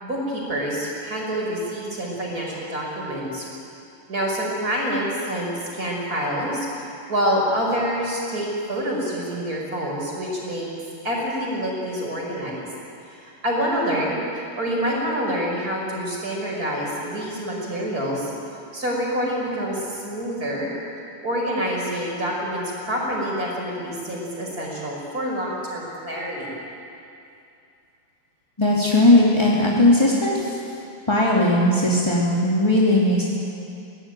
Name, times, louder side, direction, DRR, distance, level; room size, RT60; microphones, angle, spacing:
voice 1, 0.0-3.5 4.1-10.7 11.0-12.7 13.1-18.3 18.7-20.7 21.2-26.6, equal, 20° right, -2 dB, 5.8 m, -27 dB
voice 2, 28.6-30.6 31.1-33.2, left 1 dB, 10° left, -5 dB, 1.5 m, -18 dB
24.5 x 18.0 x 9.2 m, 2.6 s
omnidirectional pair, 5.1 m